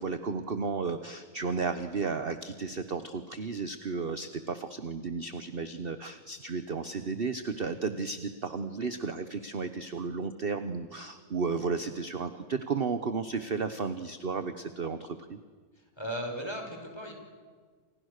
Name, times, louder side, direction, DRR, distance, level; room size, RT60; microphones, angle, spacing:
voice 1, 0.0-15.4, right 4 dB, 40° right, 10 dB, 1.1 m, -33 dB
voice 2, 15.8-17.1, equal, 15° left, 3 dB, 5.6 m, -37 dB
30.0 x 28.0 x 6.6 m, 1.5 s
omnidirectional pair, 1.7 m